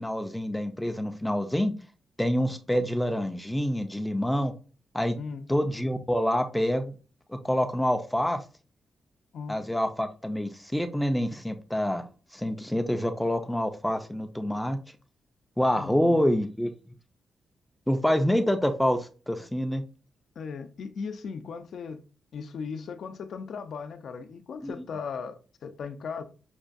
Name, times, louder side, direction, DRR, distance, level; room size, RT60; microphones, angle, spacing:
voice 1, 0.0-1.7 2.2-4.5 4.9-5.2 5.5-6.9 7.3-8.4 9.5-12.0 12.3-14.8 15.6-16.7 17.9-19.8 24.6-24.7, equal, 5° left, 0.4 m, -27 dB
voice 2, 5.2-5.5 9.3-9.6 15.8-16.3 20.4-22.0 22.3-26.2, left 5 dB, 70° left, 0.5 m, -37 dB
5.9 x 2.3 x 2.5 m
cardioid pair, 105°, 0 cm